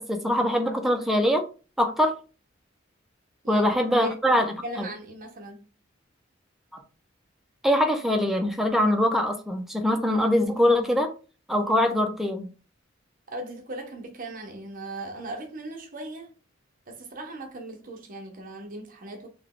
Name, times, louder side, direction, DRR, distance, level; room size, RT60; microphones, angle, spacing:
voice 1, 0.0-1.4 1.8-2.1 3.5-4.5 4.8-4.9 6.7-6.8 7.6-11.1 11.5-12.5, left 1 dB, ahead, 0.5 m, -23 dB
voice 2, 4.0-5.6 13.3-16.3 16.9-19.3, right 1 dB, 45° right, 0.9 m, -38 dB
3.4 x 2.3 x 3.7 m
head